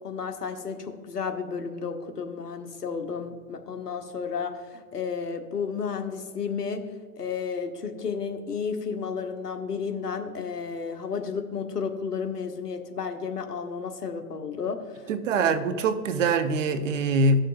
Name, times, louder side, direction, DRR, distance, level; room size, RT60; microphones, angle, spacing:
voice 1, 0.0-6.8 7.2-15.5, left 6 dB, 85° left, 1.2 m, -32 dB
voice 2, 15.1-17.4, right 3 dB, 55° right, 0.9 m, -23 dB
17.5 x 6.5 x 2.5 m
figure-of-eight pair, 115°, 46 cm